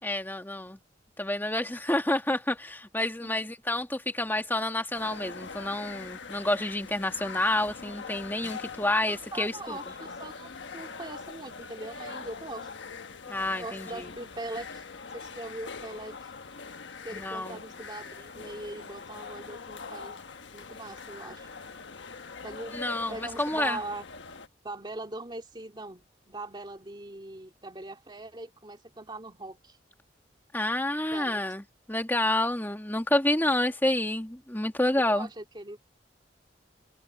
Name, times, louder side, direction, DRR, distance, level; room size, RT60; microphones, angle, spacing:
voice 1, 0.0-0.8 1.2-9.8 13.3-14.1 17.1-17.6 22.7-23.8 30.5-35.3, left 1 dB, 10° left, 1.9 m, -29 dB
sound 1, 4.9-24.5, left 5 dB, 90° left, 1.2 m, -43 dB
voice 2, 9.1-12.7 13.6-14.8 15.1-16.3 17.0-20.2 20.5-21.5 22.4-22.8 23.1-24.1 24.6-29.8 31.1-31.4 35.1-35.8, right 2 dB, 25° right, 2.7 m, -41 dB
head